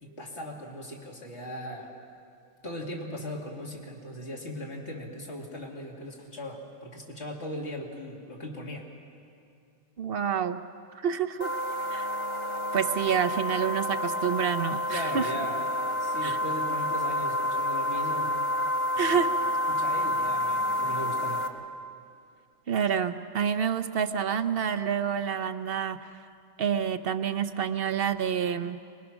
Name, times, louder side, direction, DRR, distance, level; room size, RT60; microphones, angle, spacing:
voice 1, 0.0-1.9 2.6-8.9 14.9-15.6 16.0-18.3 19.1-19.2 19.7-21.5, equal, 70° left, -1 dB, 2.7 m, -38 dB
voice 2, 10.0-10.6 11.0-11.5 11.9-12.1 12.7-15.3 16.2-16.4 19.0-19.3 22.7-26.2 26.6-28.8, right 8 dB, 60° right, 9 dB, 0.8 m, -28 dB
sound 1, 11.4-21.5, left 1 dB, 25° right, 1.1 m, -29 dB
24.5 x 21.0 x 6.1 m, 2.4 s
omnidirectional pair, 1.2 m